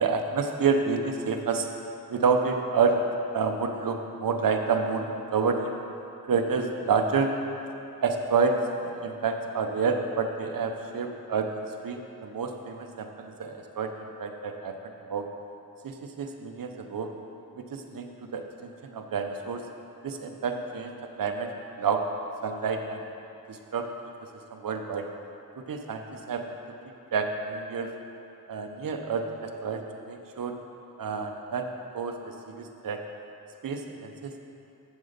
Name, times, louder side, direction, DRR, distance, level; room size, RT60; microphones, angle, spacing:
voice 1, 0.0-1.7 2.1-3.0 3.3-5.8 6.2-7.3 8.0-8.6 8.8-11.5 11.8-15.3 15.8-17.1 17.6-19.6 20.0-21.5 21.8-22.0 22.4-23.0 23.5-23.9 24.5-25.1 25.6-26.6 26.8-27.9 28.5-30.6 31.0-31.7 31.9-33.0 33.6-34.4, right 5 dB, 60° right, 5 dB, 0.9 m, -29 dB
8.0 x 7.1 x 5.1 m, 2.8 s
cardioid pair, 60°, 37 cm